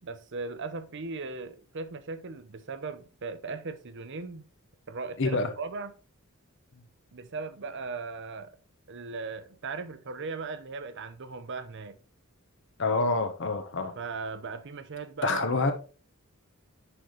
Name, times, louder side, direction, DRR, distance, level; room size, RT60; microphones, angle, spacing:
voice 1, 0.0-4.5 4.9-5.9 7.1-8.5 8.9-12.0 13.8-15.7, right 4 dB, 55° right, 0.7 m, -38 dB
voice 2, 5.2-5.5 6.7-6.8 12.8-13.9 15.2-15.7, left 3 dB, 55° left, 1.0 m, -27 dB
9.9 x 4.1 x 3.1 m
head